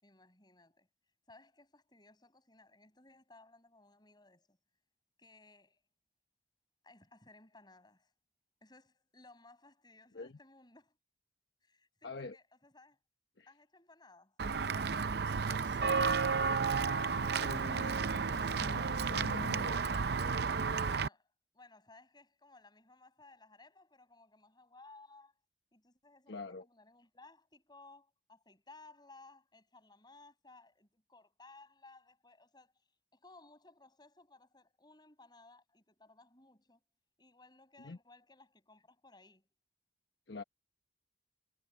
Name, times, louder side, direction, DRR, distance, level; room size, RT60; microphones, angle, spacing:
voice 1, 0.0-0.9 1.3-4.6 5.2-5.8 6.8-8.1 8.6-11.0 11.6-13.0 13.5-14.4 20.8-25.3 25.7-32.8 33.1-36.8 37.2-39.5, left 3 dB, 25° left, 7.5 m, -60 dB
voice 2, 12.0-12.4 13.4-13.5 15.3-15.8 16.5-16.6 17.1-19.8 26.3-26.7 37.8-38.0 40.3-40.4, left 3 dB, 65° left, 1.2 m, -46 dB
Walk footsteps / Bell, 14.4-21.1, right 5 dB, 55° right, 0.6 m, -32 dB
head